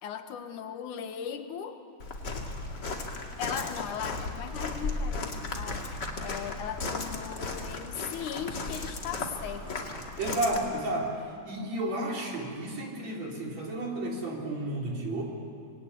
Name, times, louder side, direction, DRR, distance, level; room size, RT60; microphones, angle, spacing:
voice 1, 0.0-1.8 3.4-5.9 6.2-9.9, left 8 dB, 80° left, 7 dB, 2.8 m, -38 dB
Walk footsteps, 2.0-10.6, left 3 dB, 35° left, 2.6 m, -35 dB
voice 2, 10.2-11.1 11.4-15.2, right 1 dB, 60° right, -1 dB, 5.1 m, -32 dB
26.0 x 20.5 x 9.9 m, 2.5 s
omnidirectional pair, 3.5 m